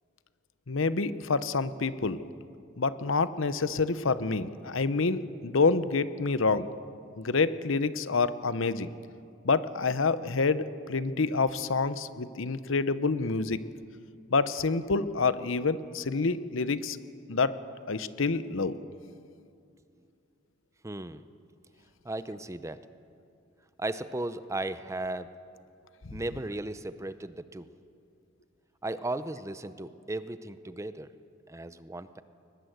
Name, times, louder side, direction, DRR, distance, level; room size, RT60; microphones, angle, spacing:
voice 1, 0.7-2.2 2.8-6.7 7.2-8.9 9.4-13.6 14.3-17.0 17.3-17.6 17.9-18.8, left 4 dB, 75° left, 14 dB, 0.8 m, -27 dB
voice 2, 20.8-21.3 22.0-22.8 23.8-25.3 26.1-27.7 28.8-31.1 31.5-32.2, right 2 dB, 15° right, 13 dB, 0.7 m, -36 dB
22.0 x 20.0 x 8.0 m, 2.4 s
head